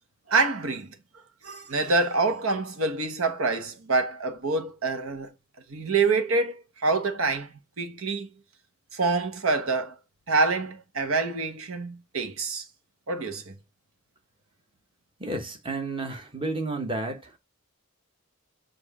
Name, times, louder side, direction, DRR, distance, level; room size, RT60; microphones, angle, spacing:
voice 1, 0.3-0.9 1.4-5.3 5.7-8.3 8.9-10.0 10.3-12.6 13.1-13.5, right 3 dB, 80° right, 1.1 m, -26 dB
voice 2, 15.2-17.4, right 2 dB, 25° right, 1.1 m, -31 dB
7.5 x 2.7 x 4.8 m
head